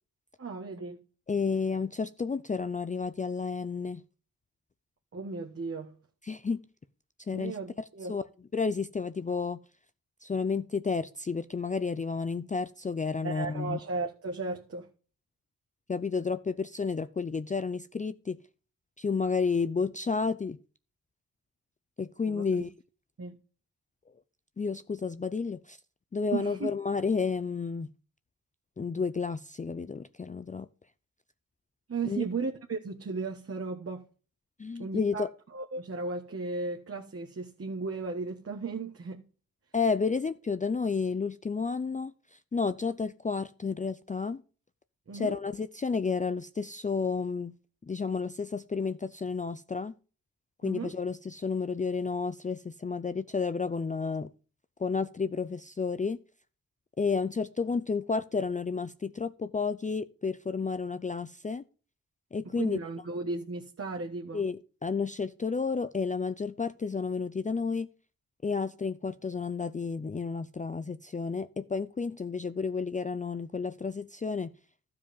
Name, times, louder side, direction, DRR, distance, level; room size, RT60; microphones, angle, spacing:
voice 1, 0.4-1.0 5.1-5.9 7.3-8.2 13.2-14.9 22.3-22.4 23.2-23.3 26.3-26.7 31.9-34.0 34.8-35.3 35.5-39.2 45.1-45.4 50.6-50.9 62.6-64.4, right 4 dB, 45° right, 1.4 m, -35 dB
voice 2, 1.3-4.0 6.2-6.6 7.3-7.6 8.1-8.2 8.5-9.6 10.2-13.8 15.9-18.4 19.0-20.6 22.0-22.7 24.6-25.8 26.1-27.9 28.8-30.7 32.0-32.2 34.6-35.3 39.7-44.4 45.1-47.5 47.8-49.9 50.6-54.3 54.8-56.2 57.0-61.6 62.3-62.8 64.3-67.9 68.4-74.5, left 5 dB, 25° left, 0.4 m, -31 dB
12.5 x 4.9 x 7.0 m
cardioid pair, 85°, 34 cm